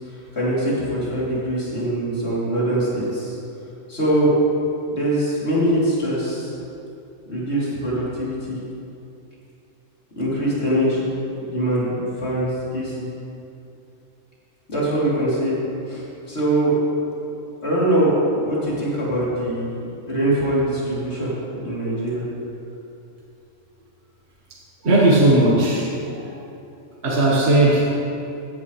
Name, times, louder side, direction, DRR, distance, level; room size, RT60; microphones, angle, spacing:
voice 1, 0.3-3.4 3.9-4.4 4.9-6.5 7.3-8.6 10.2-11.1 11.5-13.1 14.7-15.6 15.9-16.7 17.1-17.2 17.6-21.3 21.6-22.2, right 1 dB, 55° left, -8 dB, 3.6 m, -22 dB
voice 2, 24.8-26.4 27.0-28.0, right 2 dB, 55° right, -5 dB, 1.7 m, -17 dB
15.5 x 11.0 x 3.3 m, 2.7 s
omnidirectional pair, 1.3 m